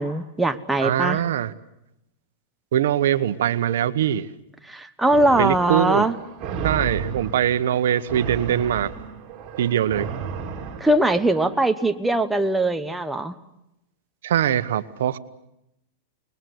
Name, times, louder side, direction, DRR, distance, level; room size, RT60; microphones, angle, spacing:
voice 1, 0.0-1.2 4.6-6.1 10.8-13.3, right 1 dB, 5° right, 1.1 m, -21 dB
voice 2, 0.8-1.5 2.7-4.3 5.4-6.1 6.6-8.9 9.6-10.1 14.2-15.2, right 10 dB, 80° right, 1.1 m, -22 dB
sound 1, 5.1-11.5, right 6 dB, 30° right, 4.7 m, -33 dB
28.0 x 21.0 x 8.0 m
supercardioid pair, 135°, 0 cm